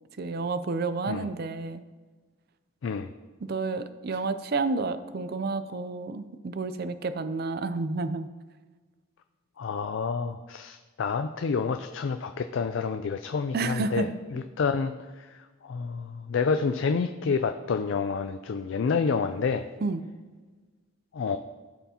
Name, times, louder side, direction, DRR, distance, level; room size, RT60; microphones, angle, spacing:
voice 1, 0.2-1.8 3.5-8.3 13.5-14.2 19.8-20.0, right 3 dB, 45° right, 12 dB, 0.4 m, -30 dB
voice 2, 9.6-19.7 21.1-21.4, left 5 dB, 60° left, 8 dB, 0.4 m, -29 dB
15.5 x 5.8 x 2.9 m, 1.4 s
head